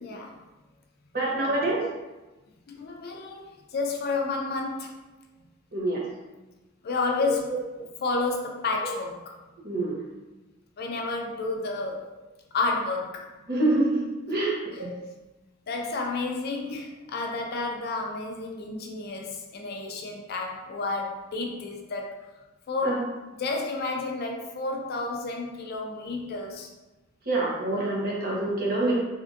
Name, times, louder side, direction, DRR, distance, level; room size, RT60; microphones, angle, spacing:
voice 1, 0.0-0.4 1.3-1.5 2.7-5.0 6.8-7.5 8.0-9.3 10.8-12.1 12.5-13.3 14.7-14.8 15.7-22.3 22.7-23.0 23.4-26.7 28.0-28.1 28.8-28.9, left 3 dB, 45° left, 1 dB, 0.4 m, -31 dB
voice 2, 1.1-1.9 5.7-6.0 9.6-10.0 13.5-14.0 14.3-14.9 22.8-23.0 27.3-29.0, right 2 dB, 45° right, -5 dB, 0.9 m, -26 dB
3.5 x 2.5 x 2.5 m, 1.1 s
head